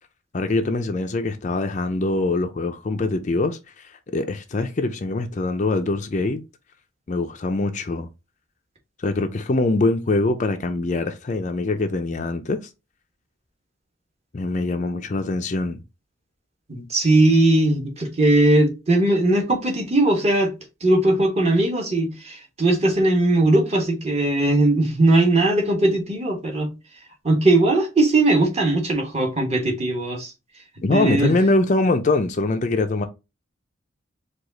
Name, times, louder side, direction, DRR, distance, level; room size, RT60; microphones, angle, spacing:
voice 1, 0.3-6.4 7.1-8.1 9.0-12.6 14.3-15.8 30.8-33.1, left 2 dB, 35° left, 0.4 m, -23 dB
voice 2, 16.7-20.5 20.8-26.7 27.2-30.3 30.9-31.3, right 2 dB, 30° right, 1.1 m, -19 dB
4.8 x 2.4 x 3.9 m
head